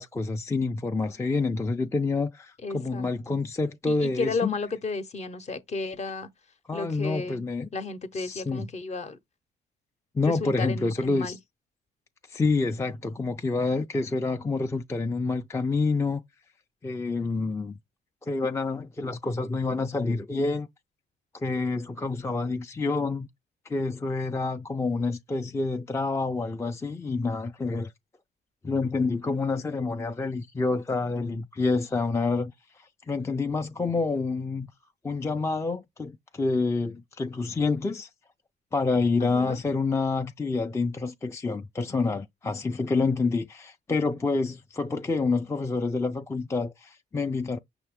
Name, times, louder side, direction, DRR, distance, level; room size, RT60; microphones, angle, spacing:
voice 1, 0.0-4.6 6.7-7.7 8.1-8.7 10.1-11.4 12.3-16.2 16.8-17.8 18.2-20.7 21.3-23.3 23.7-27.9 28.6-34.7 35.0-38.1 38.7-47.6, left 3 dB, 15° left, 0.4 m, -28 dB
voice 2, 2.6-3.4 3.9-6.3 6.7-7.4 7.7-9.2 10.4-11.4 39.2-39.6, left 3 dB, 35° left, 0.7 m, -33 dB
5.7 x 2.5 x 3.5 m
cardioid pair, 85°, 19 cm